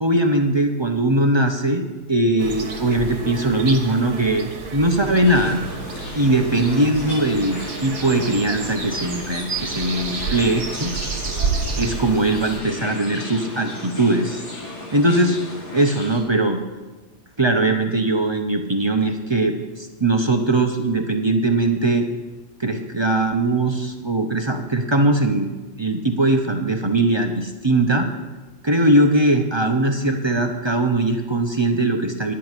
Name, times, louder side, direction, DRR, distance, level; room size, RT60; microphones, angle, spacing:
voice 1, 0.0-5.6 6.2-10.9 11.8-14.4 14.9-15.4 15.7-16.6 17.4-22.1 22.6-25.5 25.8-28.1 28.6-32.3, right 2 dB, 25° right, 4 dB, 0.6 m, -20 dB
sound 1, 2.4-12.6, right 4 dB, 75° right, 1.6 m, -30 dB
sound 2, 5.2-16.2, left 2 dB, 70° left, 2.6 m, -35 dB
11.0 x 5.7 x 8.9 m, 1.2 s
omnidirectional pair, 1.5 m